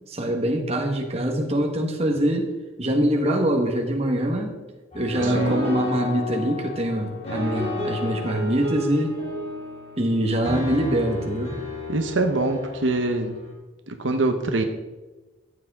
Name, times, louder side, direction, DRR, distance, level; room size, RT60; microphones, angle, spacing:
voice 1, 0.1-2.5 2.8-4.5 4.9-9.1 10.0-11.5, right 1 dB, 30° right, 2 dB, 1.4 m, -24 dB
sound 1, 4.9-13.5, left 2 dB, 30° left, 3.2 m, -32 dB
voice 2, 5.2-5.7 11.9-13.4 13.9-14.6, right 2 dB, 75° right, 6 dB, 1.0 m, -24 dB
14.0 x 8.5 x 3.7 m, 1.2 s
head